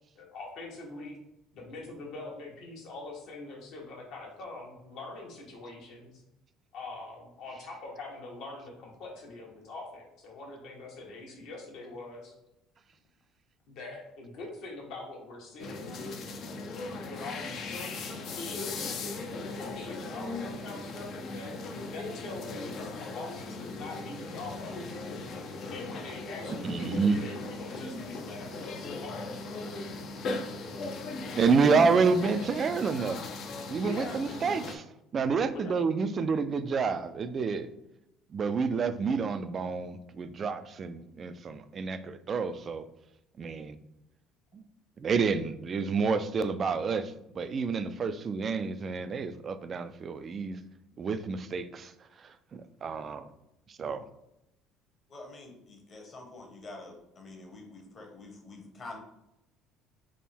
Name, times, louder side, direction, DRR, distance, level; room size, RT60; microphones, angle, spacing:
voice 1, 0.1-1.2 1.5-6.2 6.7-12.3 13.7-16.0 17.0-21.6 21.9-25.0 25.7-28.8 29.0-29.3 33.8-34.4 35.5-35.9, left 2 dB, 70° left, -1 dB, 1.3 m, -43 dB
sound 1, 15.6-34.8, left 3 dB, 55° left, 0.5 m, -38 dB
voice 2, 26.6-27.2 31.3-33.2 33.7-34.8 35.1-37.7 38.3-42.8 43.4-43.8 44.5-44.6 45.0-50.6 51.0-51.9 52.2-53.3 53.7-54.0, right 5 dB, 35° right, 12 dB, 0.3 m, -29 dB
voice 3, 55.1-59.0, left 2 dB, 35° left, 1 dB, 1.0 m, -47 dB
3.5 x 2.1 x 4.2 m, 0.85 s
cardioid pair, 110°, 0 cm